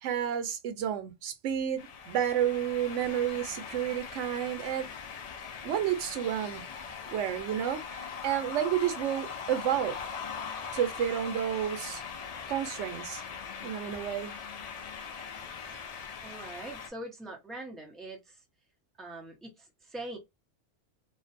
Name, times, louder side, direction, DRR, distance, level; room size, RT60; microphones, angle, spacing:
voice 1, 0.0-4.9 5.6-6.6 7.1-10.0 10.7-12.0 12.5-13.2 13.6-14.4, right 10 dB, 90° right, 0.9 m, -31 dB
sound 1, 1.8-16.9, left 6 dB, 75° left, 0.3 m, -41 dB
voice 2, 16.2-18.2 19.0-20.2, right 2 dB, ahead, 0.6 m, -42 dB
2.5 x 2.1 x 2.5 m
omnidirectional pair, 1.2 m